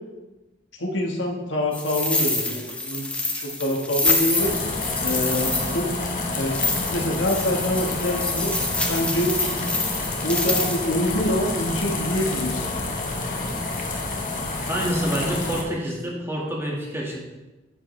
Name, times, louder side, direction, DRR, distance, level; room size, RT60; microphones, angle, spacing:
voice 1, 0.8-3.1 3.4-4.5 5.0-5.9 6.4-6.6 6.9-8.5 8.8-9.8 10.2-13.0, left 1 dB, 70° left, 0 dB, 1.5 m, -26 dB
sound 1, 1.7-10.9, left 2 dB, 5° left, 0.9 m, -27 dB
sound 2, 4.4-15.6, left 2 dB, 45° left, 1.3 m, -28 dB
voice 2, 14.7-17.2, equal, 15° right, -3 dB, 1.8 m, -28 dB
9.9 x 7.9 x 3.3 m, 1.1 s
head